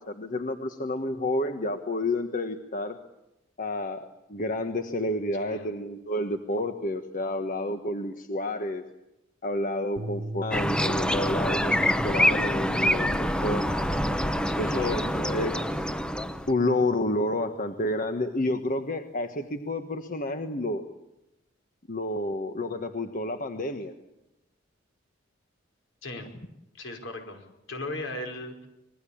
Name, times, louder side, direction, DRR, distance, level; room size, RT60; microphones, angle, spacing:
voice 1, 0.0-3.0 3.6-8.8 9.4-13.6 14.6-15.8 16.5-20.8 21.9-23.9, left 1 dB, 45° left, 7 dB, 1.5 m, -30 dB
sound 1, 10.0-18.4, right 2 dB, 80° right, 1.3 m, -42 dB
sound 2, 10.5-16.5, equal, 5° left, 1.0 m, -26 dB
voice 2, 14.5-15.1 26.0-26.3 26.8-27.4 27.7-28.7, left 2 dB, 75° left, 5 dB, 5.2 m, -37 dB
26.0 x 21.5 x 8.7 m, 0.90 s
head